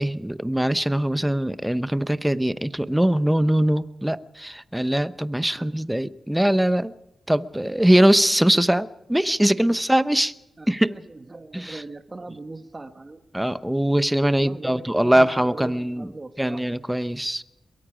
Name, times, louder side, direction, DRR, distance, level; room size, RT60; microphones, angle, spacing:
voice 1, 0.0-6.9 7.3-10.3 10.7-10.9 11.5-11.8 13.3-16.1 16.4-17.4, right 1 dB, 5° right, 0.8 m, -22 dB
voice 2, 10.6-13.2 14.4-16.6, right 2 dB, 30° right, 1.4 m, -40 dB
23.0 x 22.5 x 5.0 m
cardioid pair, 80°, 0 cm